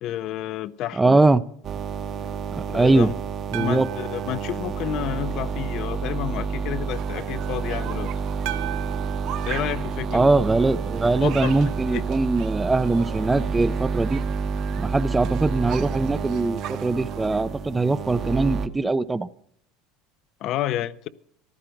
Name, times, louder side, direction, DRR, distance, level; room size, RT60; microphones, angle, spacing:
voice 1, 0.0-1.2 2.7-3.1 3.6-8.1 9.5-10.3 11.2-12.0 20.4-21.1, left 13 dB, 50° left, 0.7 m, -30 dB
voice 2, 1.0-1.4 2.7-3.1 3.5-3.9 10.1-14.2 14.8-19.3, right 2 dB, 10° right, 0.5 m, -21 dB
sound 1, 1.6-18.7, right 6 dB, 40° right, 1.0 m, -29 dB
sound 2, 3.5-5.7 8.5-10.8, right 16 dB, 75° right, 0.7 m, -38 dB
sound 3, 6.9-17.4, right 11 dB, 55° right, 1.3 m, -40 dB
15.0 x 12.5 x 5.2 m
supercardioid pair, 130°, 0 cm